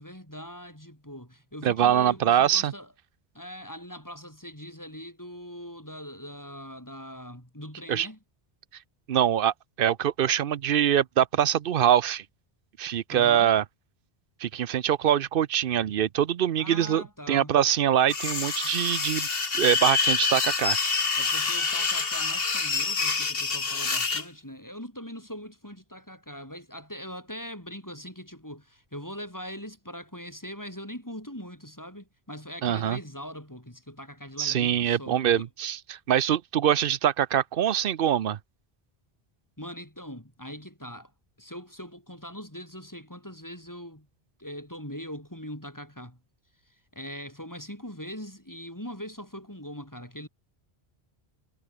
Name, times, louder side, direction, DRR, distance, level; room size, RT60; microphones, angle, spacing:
voice 1, 0.0-2.9 3.3-8.2 13.1-13.5 16.6-17.6 21.2-35.5 39.6-41.1 41.4-44.1 44.4-46.2 46.7-50.3, equal, 20° left, 4.7 m, -41 dB
voice 2, 1.6-2.7 7.9-8.1 9.1-12.2 12.8-13.6 14.4-19.3 19.6-20.8 32.6-33.0 34.4-38.4, right 10 dB, 65° right, 0.8 m, -24 dB
sound 1, 18.1-24.2, left 4 dB, 65° left, 2.0 m, -27 dB
omnidirectional pair, 1.0 m